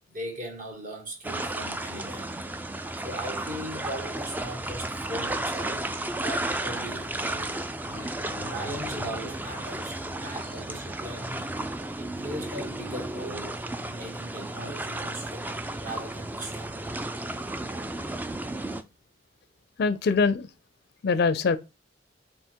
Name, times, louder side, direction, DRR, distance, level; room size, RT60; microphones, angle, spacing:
voice 1, 0.1-2.3 2.8-5.9 6.1-7.7 8.4-11.4 12.0-16.7 17.1-17.3 18.6-18.7, right 1 dB, 45° right, 1.4 m, -39 dB
sound 1, 1.2-18.8, right 1 dB, 10° right, 0.3 m, -33 dB
voice 2, 7.9-9.1 19.8-20.5 21.0-21.6, left 4 dB, 60° left, 0.4 m, -26 dB
3.5 x 3.2 x 4.4 m
head